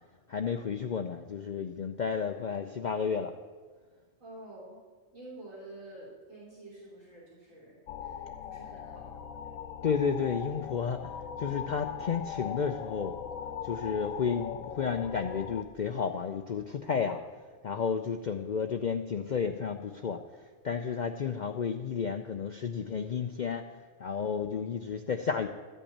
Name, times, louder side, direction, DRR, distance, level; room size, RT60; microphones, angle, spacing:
voice 1, 0.3-3.3 9.8-13.2 13.6-17.2 17.6-20.2 20.6-23.7 24.0-25.5, left 6 dB, 65° left, 6 dB, 0.4 m, -32 dB
voice 2, 4.2-4.8 5.1-9.1, right 1 dB, 75° right, -7 dB, 3.8 m, -49 dB
sound 1, 7.9-15.6, left 9 dB, 85° left, 1.0 m, -40 dB
13.5 x 5.4 x 8.5 m, 1.5 s
omnidirectional pair, 1.4 m